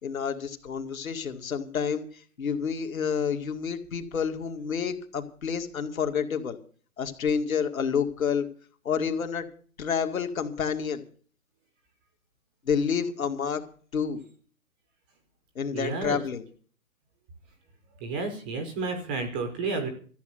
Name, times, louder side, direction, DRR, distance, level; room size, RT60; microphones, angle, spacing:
voice 1, 0.0-6.6 7.0-8.5 8.8-9.5 9.8-11.0 12.7-13.6 13.9-14.2 15.6-16.5, left 6 dB, 65° left, 6 dB, 2.1 m, -29 dB
voice 2, 15.7-16.2 18.0-19.9, right 3 dB, 5° right, 7 dB, 0.5 m, -31 dB
14.0 x 7.7 x 8.0 m, 0.43 s
hypercardioid pair, 145°, 44 cm